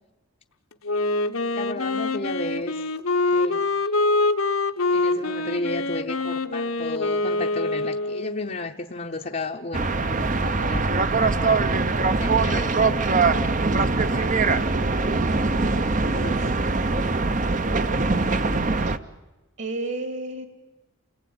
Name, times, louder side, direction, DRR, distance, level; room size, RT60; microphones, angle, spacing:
Wind instrument woodwind instrument, 0.8-8.6, left 2 dB, 75° left, 1.2 m, -25 dB
voice 1, 1.5-2.8 3.3-3.6 4.9-10.8 12.2-12.9 13.9-14.7 16.1-16.5, left 3 dB, 35° left, 2 dB, 0.8 m, -33 dB
sound 1, 9.7-19.0, right 3 dB, 35° right, 0.8 m, -22 dB
voice 2, 16.7-17.3 18.8-18.9 19.6-20.4, right 2 dB, 55° right, 8 dB, 2.4 m, -34 dB
29.0 x 19.5 x 9.6 m, 1.1 s
head